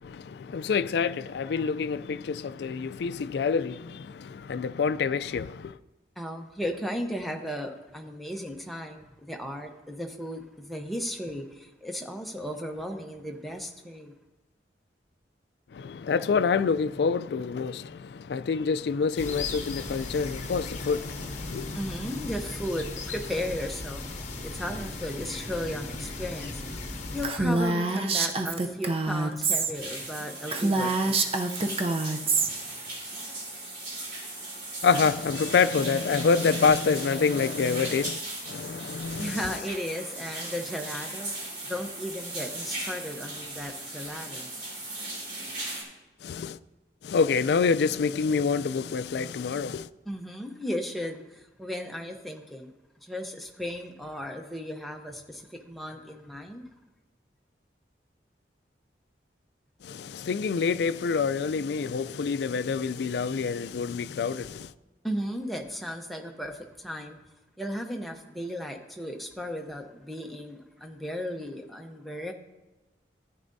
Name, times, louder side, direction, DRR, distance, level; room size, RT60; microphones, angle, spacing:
voice 1, 0.0-5.8 15.7-21.8 34.8-38.2 38.4-39.6 46.2-46.6 47.0-49.9 59.8-64.7, left 5 dB, 65° left, 0.3 m, -27 dB
voice 2, 6.2-14.1 21.7-26.6 27.1-31.2 39.2-44.5 50.1-52.7 53.0-56.7 65.0-67.2 67.6-72.3, equal, ahead, 0.8 m, -35 dB
sound 1, 19.2-27.3, left 3 dB, 40° left, 1.0 m, -37 dB
Female speech woman speaking, 27.2-29.7 30.0-30.1 30.5-32.5, right 3 dB, 30° right, 0.6 m, -26 dB
sound 2, 29.7-45.8, right 2 dB, 70° right, 3.5 m, -37 dB
13.5 x 9.6 x 2.7 m
head